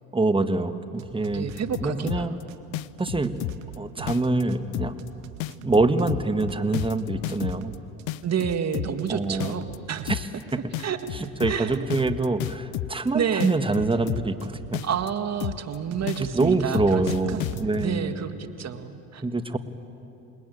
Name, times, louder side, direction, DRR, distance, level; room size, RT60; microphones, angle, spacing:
voice 1, 0.1-1.5 1.8-2.3 3.0-3.4 3.8-5.0 5.6-7.8 9.1-9.5 10.0-10.3 11.1-14.8 16.2-18.1 19.2-19.6, right 3 dB, 15° right, 9 dB, 1.6 m, -25 dB
sound 1, 1.0-2.2 2.5-6.2 6.5-10.2 10.5-12.3 13.9-15.5 15.9-17.9, right 12 dB, 85° right, 1.5 m, -42 dB
voice 2, 1.3-2.4 8.2-10.2 10.8-11.0 11.5-11.9 13.1-13.5 14.8-17.5 17.8-19.2, right 7 dB, 40° right, 8 dB, 2.0 m, -29 dB
sound 2, 1.5-2.4 2.7-3.7 4.1-4.4 4.7-5.1 5.4-7.7 8.1-9.1 9.4-9.8 10.1-10.4 10.7-13.1 13.4-14.4 14.7-15.1 15.4-15.7 16.1-17.9, left 16 dB, 70° left, 0.7 m, -31 dB
28.0 x 20.5 x 9.3 m, 2.8 s
supercardioid pair, 85°, 39 cm